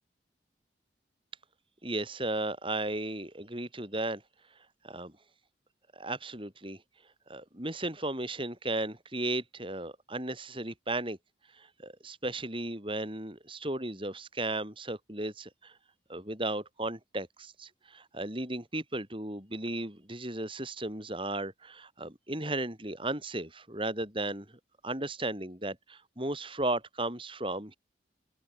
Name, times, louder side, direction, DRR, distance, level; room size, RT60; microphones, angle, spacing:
voice 1, 1.8-4.2 4.8-5.1 6.0-6.8 7.3-11.2 11.6-15.7 16.1-24.5 24.8-27.8, right 2 dB, 30° right, 7.6 m, -35 dB
open air
head